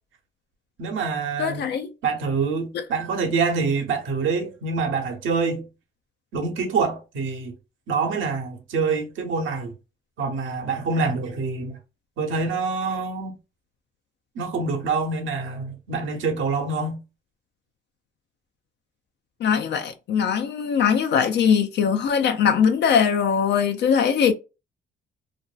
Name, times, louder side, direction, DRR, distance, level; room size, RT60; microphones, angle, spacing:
voice 1, 0.8-1.6 2.0-5.6 6.3-7.5 7.9-9.7 10.2-11.8 12.2-13.4 14.3-17.0, right 4 dB, 80° right, 0.8 m, -26 dB
voice 2, 1.4-1.9 2.7-2.8 19.4-24.3, left 7 dB, 60° left, 0.4 m, -21 dB
2.5 x 2.2 x 2.3 m
cardioid pair, 90°, 20 cm